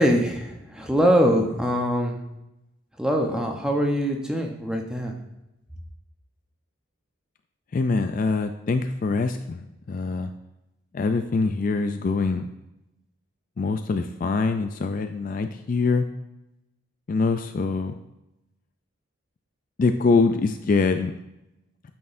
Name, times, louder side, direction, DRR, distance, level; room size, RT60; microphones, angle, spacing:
voice 1, 0.0-2.2 3.0-5.2, equal, 5° right, 1 dB, 0.8 m, -23 dB
voice 2, 7.7-9.6 9.9-10.3 10.9-12.5 13.6-16.1 17.1-17.9 19.8-21.1, left 4 dB, 40° left, 8 dB, 0.3 m, -24 dB
9.1 x 6.1 x 2.6 m, 0.92 s
head